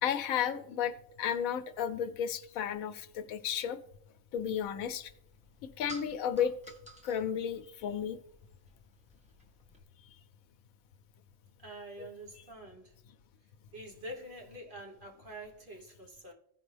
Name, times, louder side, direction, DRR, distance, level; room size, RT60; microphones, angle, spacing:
voice 1, 0.0-3.8 4.3-5.1 5.8-6.5 7.0-8.2, left 8 dB, 80° left, 1.1 m, -33 dB
sound 1, 4.3-9.8, right 1 dB, 5° right, 1.2 m, -55 dB
voice 2, 11.6-12.9 13.7-16.3, right 1 dB, 40° right, 1.3 m, -46 dB
15.5 x 5.2 x 3.3 m
omnidirectional pair, 1.4 m